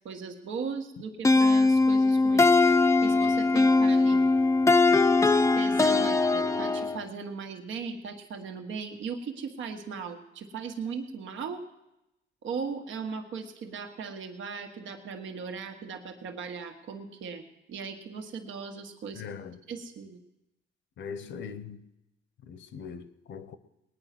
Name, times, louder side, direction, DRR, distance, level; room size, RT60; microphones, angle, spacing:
voice 1, 0.1-2.6 3.0-4.5 5.6-11.6 12.4-17.4 17.7-19.2 19.7-20.2, right 5 dB, 75° right, 1.6 m, -38 dB
sound 1, 1.2-7.0, left 3 dB, 15° left, 0.6 m, -21 dB
voice 2, 19.1-19.6 21.0-21.8 22.5-23.6, left 6 dB, 70° left, 1.1 m, -41 dB
19.5 x 9.6 x 6.0 m
cardioid pair, 90°, 20 cm